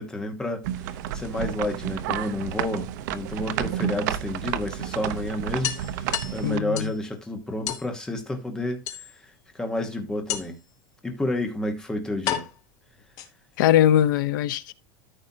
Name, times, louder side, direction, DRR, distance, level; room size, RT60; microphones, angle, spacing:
voice 1, 0.0-8.8 9.1-10.6 11.0-12.5, left 1 dB, 5° left, 1.2 m, -30 dB
sound 1, 0.6-6.6, right 11 dB, 50° right, 0.7 m, -31 dB
sound 2, 1.6-2.7 4.1-4.2 4.6-4.7 5.0-5.1 5.6-7.0 7.7-7.9 8.9-9.4 10.3-10.7 11.5-11.6 12.3-13.6, left 11 dB, 30° left, 1.1 m, -33 dB
voice 2, 6.4-6.9 13.6-14.7, left 11 dB, 60° left, 0.7 m, -21 dB
13.5 x 5.4 x 2.8 m
supercardioid pair, 180°, 12 cm